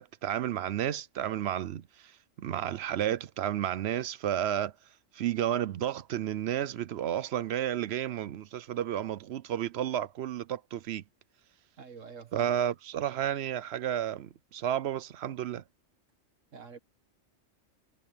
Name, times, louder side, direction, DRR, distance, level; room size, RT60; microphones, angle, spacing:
voice 1, 0.0-1.8 2.4-4.7 5.1-11.0 12.3-15.6, right 11 dB, 65° right, 0.8 m, -32 dB
voice 2, 11.8-12.5 16.5-16.8, right 6 dB, 85° right, 2.1 m, -46 dB
omnidirectional pair, 1.3 m